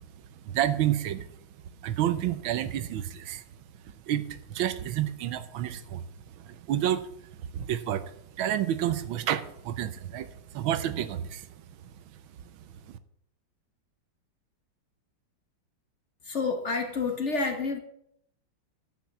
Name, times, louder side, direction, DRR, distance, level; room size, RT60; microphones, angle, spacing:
voice 1, 0.4-1.3 1.8-3.4 4.1-6.0 6.4-7.1 7.5-8.1 8.4-11.5 11.8-11.9 12.9-13.0, right 11 dB, 85° right, 13 dB, 1.6 m, -29 dB
voice 2, 16.2-17.8, left 4 dB, 45° left, 5 dB, 1.1 m, -29 dB
10.5 x 6.4 x 7.0 m, 0.72 s
omnidirectional pair, 2.1 m